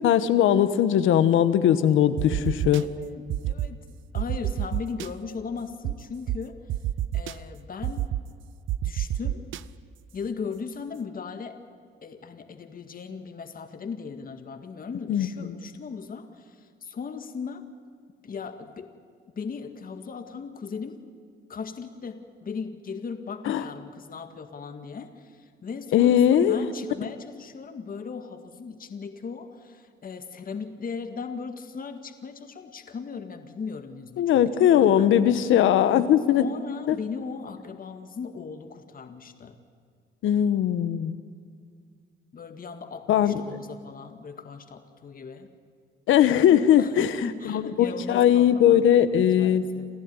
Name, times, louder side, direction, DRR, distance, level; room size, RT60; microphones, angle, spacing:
voice 1, 0.0-2.9 15.1-15.3 23.4-23.6 25.9-26.6 34.2-36.4 36.9-37.0 40.2-41.1 43.1-43.4 46.1-47.1 47.4-49.6, left 10 dB, 85° left, 12 dB, 1.3 m, -20 dB
sound 1, 2.2-2.8 3.3-3.7 4.1-5.1 5.8-5.9 6.3-6.4 6.7-7.3 7.8-8.2 8.7-9.6, right 12 dB, 75° right, 0.7 m, -27 dB
voice 2, 2.8-3.8 4.1-6.6 7.1-8.0 8.8-9.4 10.1-11.6 12.0-17.7 18.2-18.9 19.3-21.0 21.5-35.4 36.4-39.6 42.3-45.5 46.8-49.9, left 5 dB, 45° left, 7 dB, 2.0 m, -37 dB
28.5 x 14.5 x 9.8 m, 2.2 s
cardioid pair, 90°, 20 cm